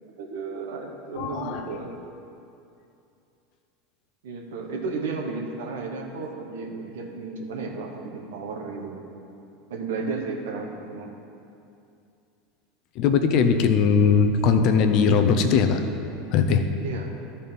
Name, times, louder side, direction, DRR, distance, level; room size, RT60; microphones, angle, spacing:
voice 1, 0.2-2.0 4.2-9.0 9.7-11.1 16.8-17.1, right 4 dB, 75° right, 1 dB, 1.2 m, -33 dB
voice 2, 1.2-1.7 13.0-15.8 16.3-16.6, left 6 dB, 55° left, 7 dB, 0.7 m, -20 dB
12.5 x 4.2 x 5.4 m, 2.6 s
hypercardioid pair, 85°, 0 cm